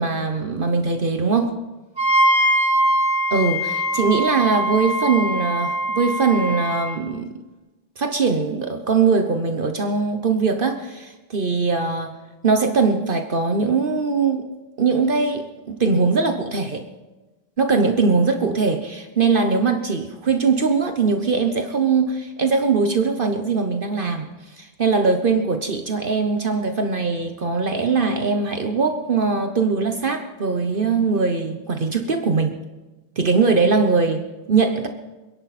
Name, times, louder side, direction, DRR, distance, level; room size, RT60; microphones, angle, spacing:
voice 1, 0.0-1.6 3.3-7.3 8.0-14.5 14.8-16.8 17.6-32.6 33.2-34.9, right 4 dB, 55° right, 6 dB, 1.2 m, -21 dB
Wind instrument woodwind instrument, 2.0-6.9, right 1 dB, 50° left, 4.3 m, -22 dB
27.5 x 11.0 x 4.2 m, 1.2 s
omnidirectional pair, 1.1 m